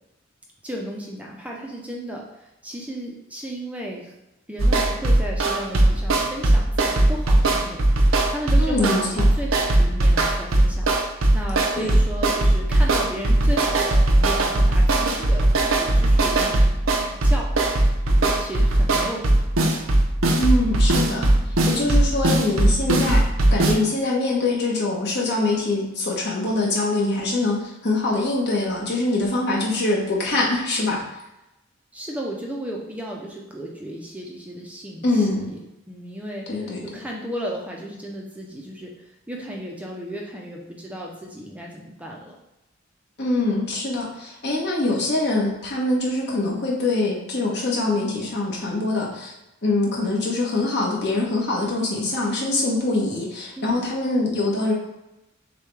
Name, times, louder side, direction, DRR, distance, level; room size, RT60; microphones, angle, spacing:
voice 1, 0.6-4.1 4.5-16.7 17.0-19.5 29.1-29.3 31.9-38.9 39.3-42.4 53.6-53.9, equal, 5° right, -2 dB, 0.5 m, -34 dB
sound 1, 4.6-23.8, right 1 dB, 85° right, 0.6 m, -19 dB
voice 2, 8.6-9.3 11.8-11.9 20.4-21.3 21.7-23.2 23.5-31.0 35.0-35.5 36.5-37.0 43.2-49.3 49.6-54.7, left 2 dB, 55° left, -4 dB, 1.2 m, -24 dB
6.6 x 2.3 x 3.2 m, 0.94 s
head